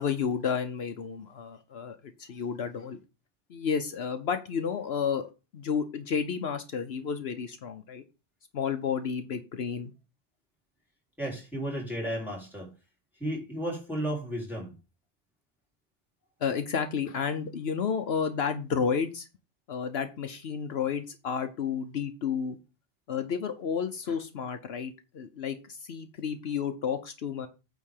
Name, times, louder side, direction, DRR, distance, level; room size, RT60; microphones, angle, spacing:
voice 1, 0.0-3.0 3.5-5.2 5.5-8.0 8.5-9.9 16.4-19.3 19.7-22.6 23.1-27.5, left 6 dB, 70° left, 8 dB, 1.0 m, -31 dB
voice 2, 11.2-12.7 13.2-14.7, right 1 dB, ahead, -4 dB, 3.8 m, -33 dB
9.0 x 3.7 x 6.5 m, 0.30 s
omnidirectional pair, 1.1 m